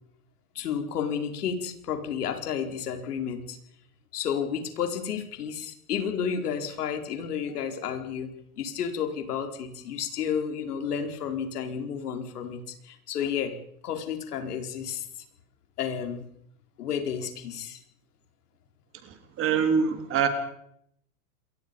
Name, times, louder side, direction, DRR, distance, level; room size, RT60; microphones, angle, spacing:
voice 1, 0.5-3.6 4.1-13.5 13.8-15.0 15.8-16.2 16.8-17.8, left 7 dB, 80° left, 6 dB, 4.8 m, -31 dB
voice 2, 19.0-20.3, right 6 dB, 30° right, 7 dB, 3.7 m, -25 dB
28.0 x 23.5 x 5.5 m, 0.71 s
supercardioid pair, 145°, 45 cm